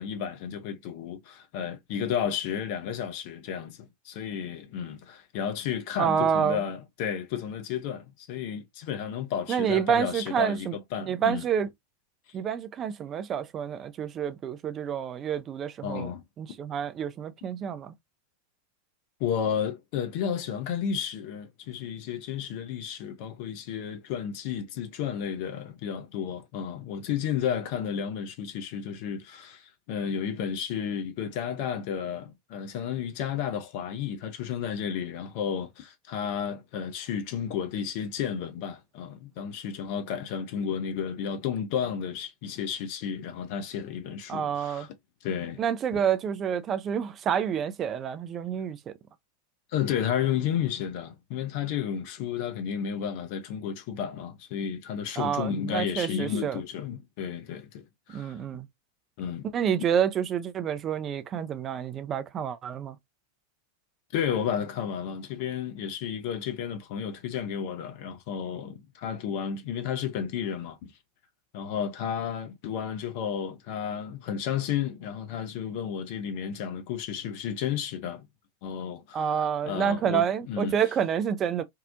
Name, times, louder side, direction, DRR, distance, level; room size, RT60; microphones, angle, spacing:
voice 1, 0.0-11.4 15.8-16.2 19.2-44.9 45.2-45.6 45.9-46.0 49.7-58.3 59.2-59.5 64.1-70.9 71.5-78.3 78.6-80.7, left 8 dB, 45° left, 0.5 m, -32 dB
voice 2, 6.0-6.7 9.5-10.8 11.0-11.7 12.3-16.1 16.4-17.9 44.3-44.9 45.6-48.9 55.2-56.6 58.1-58.7 59.5-63.0 79.1-81.6, right 8 dB, 25° right, 0.4 m, -28 dB
2.7 x 2.0 x 2.4 m
figure-of-eight pair, 90°, 0 cm